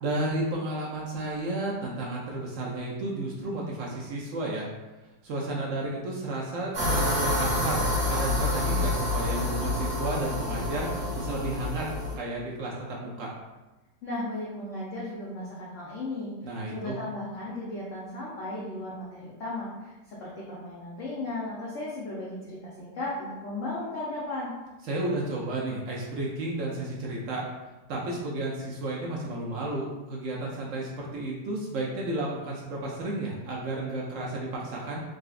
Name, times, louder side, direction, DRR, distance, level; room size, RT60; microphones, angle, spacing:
voice 1, 0.0-4.7 5.2-7.8 8.1-10.9 11.1-11.9 12.2-13.3 16.4-16.9 24.9-27.4 27.9-35.0, right 2 dB, 80° right, -3 dB, 0.7 m, -32 dB
sound 1, 6.7-12.1, left 1 dB, 55° right, 1.4 m, -28 dB
voice 2, 14.0-16.3 16.7-19.7 20.1-24.5, left 2 dB, 65° left, -7 dB, 0.8 m, -35 dB
3.8 x 2.4 x 2.4 m, 1.1 s
omnidirectional pair, 1.9 m